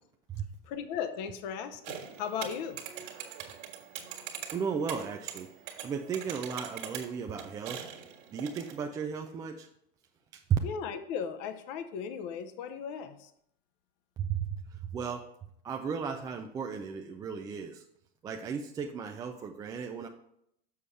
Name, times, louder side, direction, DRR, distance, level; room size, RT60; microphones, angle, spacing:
voice 1, 0.6-2.8 10.6-13.3, left 7 dB, 50° left, 9 dB, 0.8 m, -37 dB
sound 1, 1.8-8.8, right 9 dB, 60° right, 1.7 m, -43 dB
voice 2, 4.5-5.5 5.8-7.8 8.3-9.7 10.3-10.6 14.2-15.3 15.6-17.8 18.2-20.1, right 7 dB, 15° right, 3 dB, 0.3 m, -35 dB
7.0 x 4.9 x 5.6 m, 0.74 s
hypercardioid pair, 125°, 29 cm